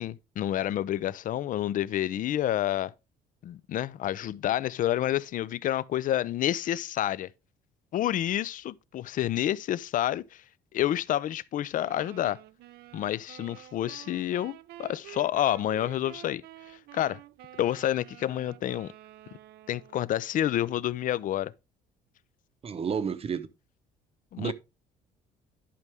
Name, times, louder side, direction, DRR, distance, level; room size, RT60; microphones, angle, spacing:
voice 1, 0.0-2.9 3.4-7.3 7.9-10.4 10.7-12.4 12.9-16.4 16.9-17.2 17.6-18.9 19.7-21.5 24.3-24.5, left 12 dB, 50° left, 0.5 m, -29 dB
sound 1, 11.8-20.2, right 15 dB, 70° right, 0.5 m, -49 dB
voice 2, 22.6-23.5 24.4-24.5, right 6 dB, 35° right, 0.8 m, -30 dB
11.0 x 5.4 x 3.5 m
cardioid pair, 110°, 17 cm